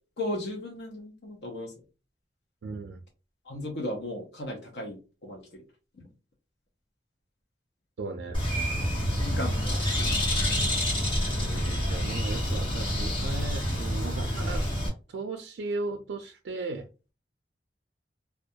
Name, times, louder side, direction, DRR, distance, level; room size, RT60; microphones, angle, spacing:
voice 1, 0.2-1.7 3.5-5.4 6.0-6.1 9.2-10.3, left 1 dB, 70° left, 0.6 m, -36 dB
voice 2, 2.6-3.0 8.0-8.4 11.3-14.6 15.1-16.9, right 3 dB, 90° right, 0.3 m, -36 dB
Bird, 8.3-14.9, equal, 30° left, 0.9 m, -27 dB
2.2 x 2.1 x 2.7 m
head